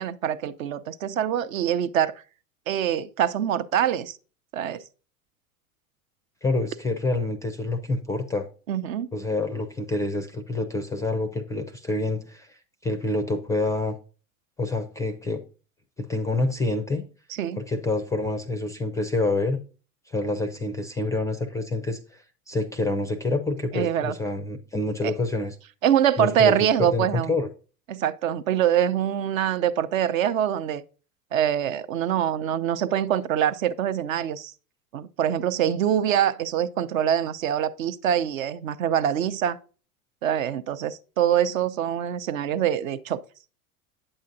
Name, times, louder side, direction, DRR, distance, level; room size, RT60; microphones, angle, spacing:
voice 1, 0.0-2.2 2.7-4.2 4.5-4.8 8.7-9.1 17.4-17.6 23.7-24.1 25.0-25.1 25.8-27.3 27.9-30.8 31.3-34.5 34.9-39.6 40.2-43.2, right 10 dB, 65° right, 0.7 m, -24 dB
voice 2, 6.4-8.5 9.1-14.0 14.6-15.4 16.0-17.0 17.6-19.6 20.1-25.6 26.2-26.5 26.8-27.5, left 2 dB, 10° left, 0.3 m, -27 dB
8.7 x 7.1 x 2.6 m
figure-of-eight pair, 85°, 44 cm